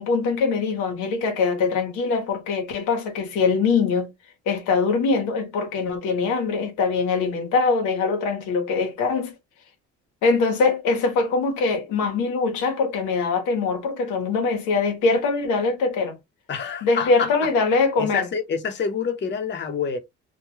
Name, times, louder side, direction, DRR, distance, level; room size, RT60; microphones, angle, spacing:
voice 1, 0.0-4.1 4.5-9.3 10.2-16.2 16.8-18.3, left 4 dB, 90° left, 1.0 m, -22 dB
voice 2, 16.5-17.5 18.0-20.0, left 6 dB, 40° left, 0.8 m, -27 dB
2.4 x 2.2 x 3.0 m
cardioid pair, 95°, 29 cm